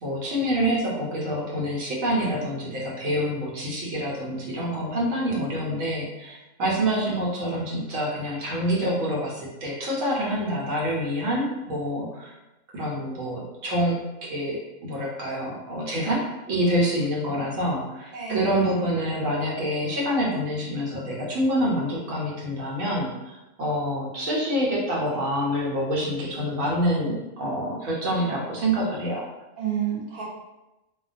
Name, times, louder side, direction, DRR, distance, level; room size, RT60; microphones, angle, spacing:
voice 1, 0.0-12.3 12.7-29.3, equal, 85° right, -3 dB, 1.1 m, -27 dB
voice 2, 18.1-18.6 29.6-30.2, right 8 dB, 55° right, -4 dB, 0.7 m, -29 dB
2.3 x 2.1 x 2.4 m, 0.99 s
omnidirectional pair, 1.3 m